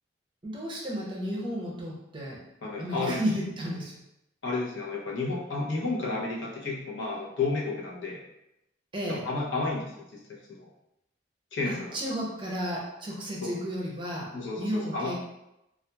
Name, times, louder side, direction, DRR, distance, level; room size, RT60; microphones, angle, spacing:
voice 1, 0.4-2.4 2.8-3.9 8.9-9.2 11.7-14.3 14.6-15.1, equal, 25° right, -3 dB, 0.6 m, -33 dB
voice 2, 2.6-3.2 4.4-8.2 9.1-10.7 11.5-12.0 13.4-13.6 14.3-15.1, left 3 dB, 85° left, -3 dB, 0.7 m, -32 dB
2.9 x 2.3 x 2.2 m, 0.88 s
head